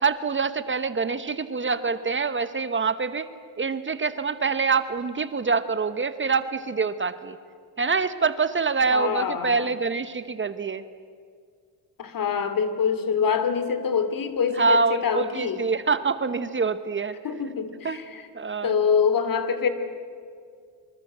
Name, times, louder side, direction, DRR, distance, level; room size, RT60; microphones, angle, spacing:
voice 1, 0.0-3.3 3.6-7.4 7.8-10.8 14.5-17.1 17.8-18.0 18.3-18.7, right 4 dB, 30° right, 12 dB, 1.0 m, -25 dB
voice 2, 8.9-9.7 12.0-15.6 17.2-18.2 18.6-19.7, left 6 dB, 50° left, 10 dB, 2.6 m, -25 dB
25.5 x 24.5 x 8.0 m, 2.2 s
cardioid pair, 115°, 42 cm